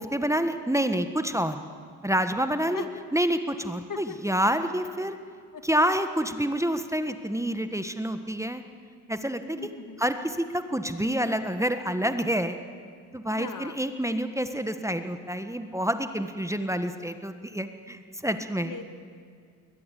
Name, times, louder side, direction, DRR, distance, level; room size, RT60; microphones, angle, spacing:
voice 1, 0.0-1.6 2.0-2.8 3.1-5.1 5.6-8.6 9.1-9.6 10.0-12.6 13.1-18.7, equal, 5° right, 9 dB, 1.5 m, -28 dB
voice 2, 3.9-4.5 5.5-5.6 9.6-10.0 13.3-13.8 18.6-18.8, left 6 dB, 45° left, 8 dB, 2.1 m, -39 dB
21.5 x 20.0 x 8.5 m, 2.1 s
hypercardioid pair, 50°, 43 cm